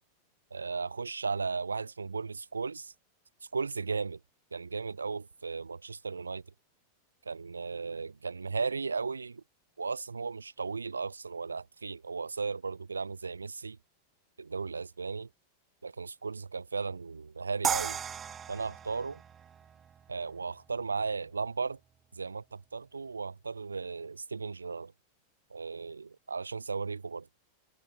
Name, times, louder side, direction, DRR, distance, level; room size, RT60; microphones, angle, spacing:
voice 1, 0.5-2.9 3.5-4.2 4.5-6.4 7.2-9.4 9.8-13.8 14.4-15.3 15.8-18.0 18.5-19.2 20.1-21.8 22.1-24.9 25.5-27.3, right 4 dB, 75° right, 5.1 m, -36 dB
sound 1, 17.6-20.7, right 8 dB, 20° right, 1.6 m, -36 dB
figure-of-eight pair, 90°, 0 cm